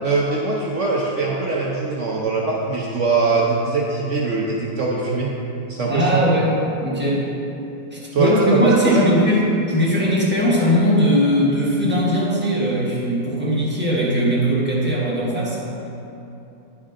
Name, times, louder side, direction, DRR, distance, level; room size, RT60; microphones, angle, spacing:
voice 1, 0.0-5.3 5.7-6.2 8.1-9.1, right 3 dB, 65° right, -3 dB, 0.7 m, -21 dB
voice 2, 5.9-7.3 7.9-9.4 9.7-15.6, equal, 10° right, -6 dB, 0.8 m, -19 dB
10.5 x 4.6 x 3.7 m, 2.9 s
omnidirectional pair, 2.1 m